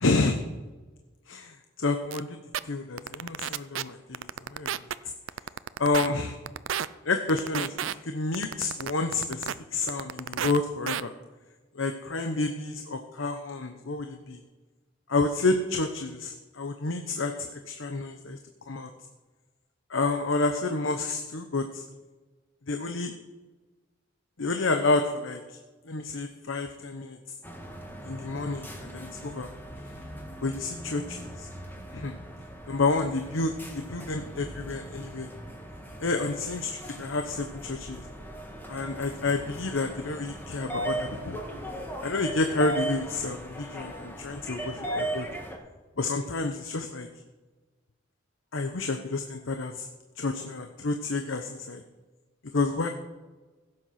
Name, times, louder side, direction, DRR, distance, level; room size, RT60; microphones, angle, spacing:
voice 1, 0.0-0.4 1.3-2.4 2.6-4.8 5.8-6.4 7.0-11.1 11.7-14.4 15.1-18.4 18.7-18.9 19.9-21.8 22.7-23.1 24.4-25.6 25.8-27.2 28.1-29.5 30.4-31.5 31.9-32.1 32.7-35.3 36.0-36.7 37.0-38.1 38.7-41.4 42.0-45.3 46.0-47.1 48.5-49.9 50.2-51.8 52.5-52.9, left 3 dB, 90° left, 6 dB, 0.9 m, -29 dB
sound 1, 2.1-2.2 2.5-2.6 3.0-3.8 4.1-4.9 5.3-6.1 6.5-6.9 7.3-7.9 8.3-9.5 9.9-10.6 10.9-11.0, right 9 dB, 90° right, 0.5 m, -30 dB
sound 2, 27.4-45.6, right 1 dB, 10° left, 1.9 m, -38 dB
15.5 x 7.8 x 5.8 m, 1.3 s
head